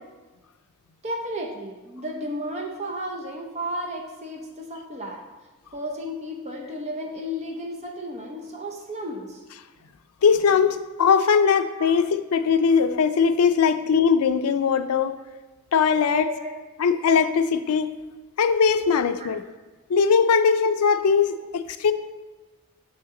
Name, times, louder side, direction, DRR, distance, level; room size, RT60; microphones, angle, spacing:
voice 1, 1.0-5.2 5.7-9.4 11.8-11.9 16.1-16.5 19.2-19.4 20.2-20.3 21.4-21.5, equal, 30° right, 1 dB, 0.7 m, -33 dB
voice 2, 10.2-15.1 15.7-16.3 16.8-17.9 18.4-19.4 19.9-21.9, left 6 dB, 80° left, 10 dB, 0.4 m, -20 dB
6.5 x 5.7 x 3.7 m, 1.2 s
head